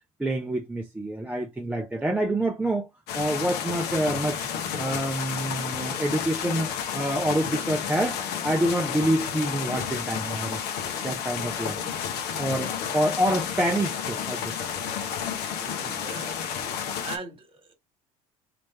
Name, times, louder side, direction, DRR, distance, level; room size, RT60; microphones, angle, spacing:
voice 1, 0.2-2.9 3.1-4.5 4.8-10.6 11.0-14.5, right 1 dB, 10° right, 0.6 m, -27 dB
sound 1, 3.1-17.2, left 8 dB, 65° left, 1.0 m, -31 dB
voice 2, 15.6-16.4 17.0-17.7, right 4 dB, 30° right, 1.6 m, -40 dB
3.1 x 2.9 x 3.4 m
hypercardioid pair, 65°, 18 cm